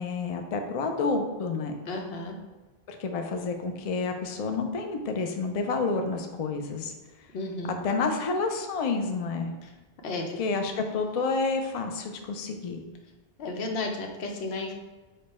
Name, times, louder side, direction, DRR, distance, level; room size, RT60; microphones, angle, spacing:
voice 1, 0.0-1.7 2.9-6.9 7.8-9.5 10.4-12.8, left 4 dB, 50° left, 4 dB, 0.4 m, -29 dB
voice 2, 1.9-2.4 7.3-7.7 10.0-10.4 13.4-14.7, left 2 dB, 80° left, 2 dB, 0.9 m, -33 dB
5.0 x 2.2 x 4.2 m, 1.3 s
omnidirectional pair, 1.1 m